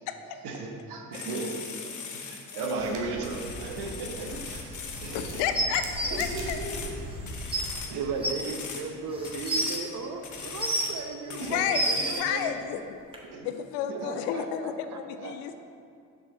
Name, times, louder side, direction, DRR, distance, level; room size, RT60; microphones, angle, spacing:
voice 1, 0.0-2.0 2.3-5.4 6.0-7.1 7.4-7.6 7.9-8.3 11.4-12.7 13.3-13.5 13.9-14.1, right 3 dB, 60° right, 2 dB, 1.1 m, -36 dB
sound 1, 1.1-2.8 3.2-5.4 5.9-7.0 7.3-8.0 8.3-8.8 9.2-9.8 10.2-11.0 11.3-12.2, left 6 dB, 40° left, 1.1 m, -40 dB
sound 2, 2.7-7.8, right 1 dB, 80° right, 1.0 m, -40 dB
voice 2, 5.1-5.8 6.1-6.6 11.3-11.8 12.2-13.0 13.4-15.5, left 9 dB, 60° left, 8 dB, 0.6 m, -31 dB
sound 3, 5.5-6.1 7.1-7.2 7.5-7.6 8.2-8.3 9.1-9.7 10.4-11.0 11.5-12.1 13.1-13.2, right 1 dB, 10° right, 1.3 m, -28 dB
voice 3, 7.9-11.4 11.9-12.4 13.9-15.5, right 4 dB, 40° right, 5 dB, 0.9 m, -36 dB
7.5 x 6.1 x 4.0 m, 2.4 s
figure-of-eight pair, 45°, 45 cm